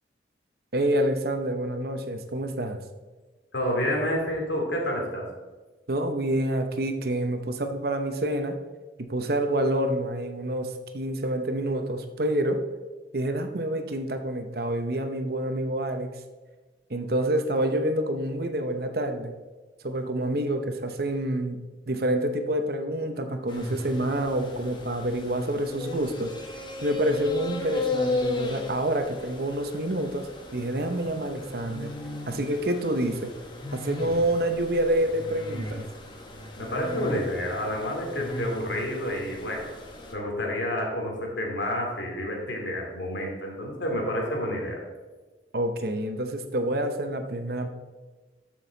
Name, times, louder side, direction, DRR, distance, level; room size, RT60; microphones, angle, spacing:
voice 1, 0.7-2.8 5.9-8.6 9.0-12.6 13.1-16.2 16.9-19.3 19.8-21.6 21.9-26.3 26.8-30.3 30.5-31.9 32.3-33.3 33.7-35.8 45.5-47.7, right 1 dB, 60° right, 7 dB, 0.9 m, -27 dB
voice 2, 3.5-5.3 36.6-39.7 40.1-44.8, left 1 dB, 85° left, 0 dB, 2.6 m, -29 dB
sound 1, 23.5-40.1, left 2 dB, 25° left, 1.2 m, -36 dB
13.5 x 6.3 x 4.0 m, 1.3 s
head